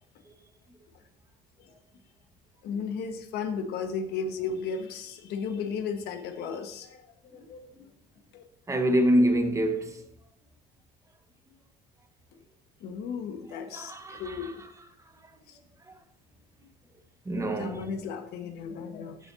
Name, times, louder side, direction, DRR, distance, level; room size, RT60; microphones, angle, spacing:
voice 1, 2.6-7.1 7.3-7.7 8.3-8.4 12.8-14.6 15.5-15.6 17.6-19.2, left 5 dB, 70° left, 1.5 m, -35 dB
voice 2, 8.7-10.0 13.6-14.5 15.2-15.3 15.9-16.0 17.2-17.9, equal, 15° right, 1.4 m, -26 dB
14.0 x 6.3 x 2.8 m
supercardioid pair, 85°, 18 cm